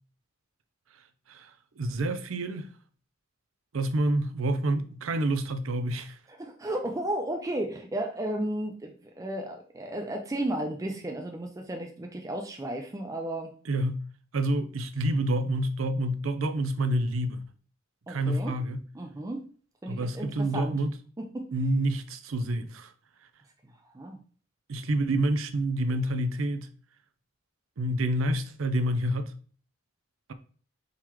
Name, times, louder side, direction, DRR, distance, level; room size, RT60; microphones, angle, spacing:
voice 1, 0.9-2.7 3.7-6.2 13.7-14.0 14.3-17.4 18.1-18.8 19.9-20.9 21.5-22.9 24.7-26.7 27.8-29.3, right 1 dB, 80° right, 0.6 m, -28 dB
voice 2, 6.3-13.5 18.1-18.5 18.9-19.5 19.8-20.7 21.2-21.5 23.6-24.2, right 1 dB, 15° right, 0.4 m, -34 dB
3.9 x 3.0 x 4.5 m
head